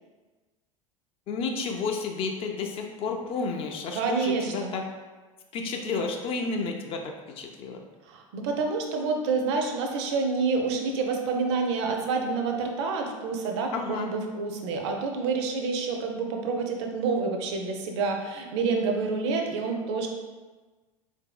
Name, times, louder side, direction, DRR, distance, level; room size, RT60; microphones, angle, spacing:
voice 1, 1.3-4.8 5.5-7.0 7.4-7.8 13.7-14.1, left 4 dB, 35° left, 2 dB, 0.4 m, -31 dB
voice 2, 3.9-4.7 8.1-20.1, right 4 dB, 55° right, 3 dB, 0.5 m, -28 dB
3.9 x 2.6 x 2.3 m, 1.3 s
figure-of-eight pair, 80°, 18 cm